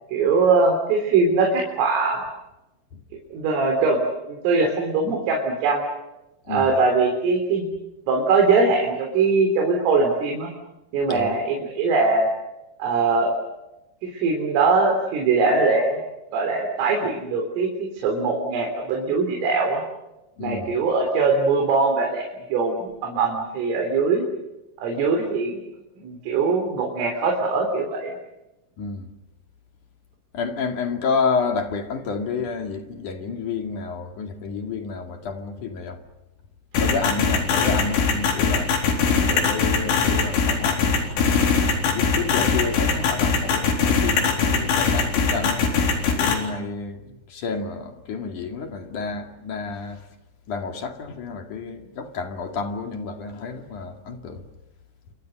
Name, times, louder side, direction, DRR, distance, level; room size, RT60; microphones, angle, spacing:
voice 1, 0.1-2.2 3.3-4.0 4.3-5.8 6.5-7.7 8.1-10.5 10.9-12.3 12.8-13.3 14.0-16.0 16.3-19.8 20.4-22.2 22.5-24.2 24.8-25.6 26.0-28.1, right 4 dB, 85° right, 6.1 m, -21 dB
voice 2, 20.4-20.7 28.8-29.1 30.3-36.0 36.8-38.7 39.1-41.5 41.8-45.7 46.1-50.0 50.5-54.5, left 5 dB, 50° left, 3.1 m, -30 dB
sound 1, 36.7-46.3, left 5 dB, 80° left, 6.6 m, -20 dB
29.5 x 26.5 x 6.5 m
omnidirectional pair, 5.7 m